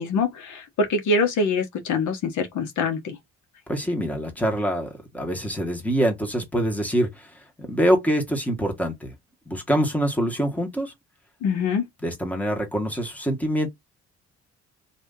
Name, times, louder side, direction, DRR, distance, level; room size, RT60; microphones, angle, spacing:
voice 1, 0.0-3.2 11.4-11.9, left 3 dB, 75° left, 1.1 m, -24 dB
voice 2, 3.7-4.9 5.1-7.3 7.6-9.1 9.5-10.9 12.0-13.7, equal, 5° left, 1.4 m, -24 dB
2.7 x 2.7 x 3.6 m
cardioid pair, 90°, 30 cm